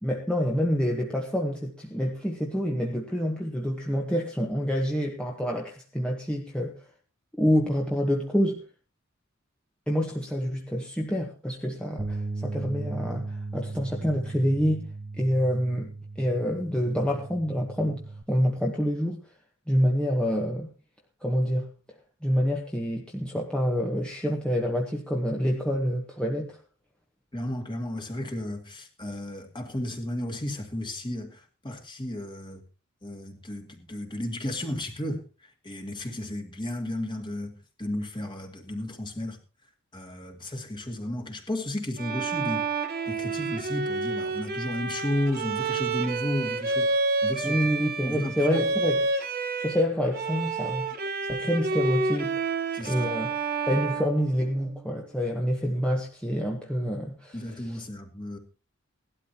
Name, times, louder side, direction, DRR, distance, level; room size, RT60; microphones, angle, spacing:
voice 1, 0.0-6.7 7.4-8.6 9.9-14.9 15.2-15.9 16.2-19.2 19.7-20.7 21.2-21.7 22.2-26.6 47.4-49.2 49.6-50.9 51.3-52.4 52.8-53.3 53.6-57.8, equal, 5° left, 1.3 m, -27 dB
sound 1, 12.0-18.2, right 3 dB, 20° right, 0.6 m, -37 dB
voice 2, 27.3-32.6 33.0-35.2 35.6-39.4 39.9-42.6 43.1-47.6 48.0-48.6 52.7-53.1 57.3-58.4, left 1 dB, 20° left, 2.1 m, -33 dB
Bowed string instrument, 42.0-49.8 50.1-54.9, right 3 dB, 45° right, 1.4 m, -29 dB
18.0 x 12.5 x 2.9 m
head